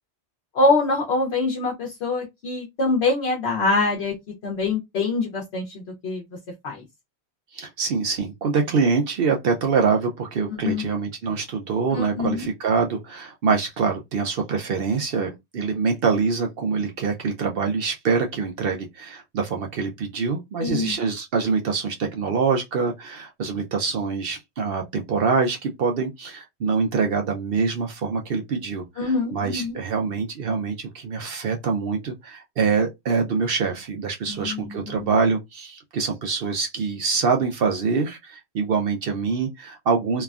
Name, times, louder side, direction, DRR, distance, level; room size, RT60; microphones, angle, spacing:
voice 1, 0.5-4.1 4.4-6.2 6.6-6.8 10.5-10.8 11.9-12.5 20.6-20.9 29.0-29.8 34.3-35.2, left 3 dB, 75° left, 1.1 m, -24 dB
voice 2, 7.5-40.2, right 5 dB, 65° right, 0.8 m, -25 dB
3.2 x 2.2 x 2.3 m
omnidirectional pair, 1.1 m